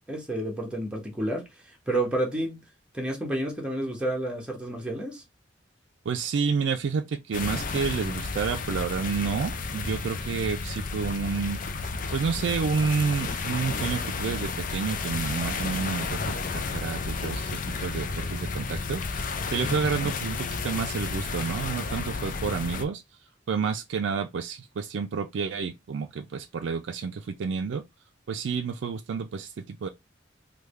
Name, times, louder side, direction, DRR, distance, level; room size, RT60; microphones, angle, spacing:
voice 1, 0.1-2.6 2.9-5.2, right 1 dB, 5° right, 0.9 m, -30 dB
voice 2, 6.1-11.6 12.1-23.0 23.5-27.8 28.3-29.9, right 5 dB, 75° right, 0.3 m, -30 dB
sound 1, 7.3-22.8, left 4 dB, 45° left, 0.5 m, -32 dB
3.5 x 2.2 x 3.1 m
head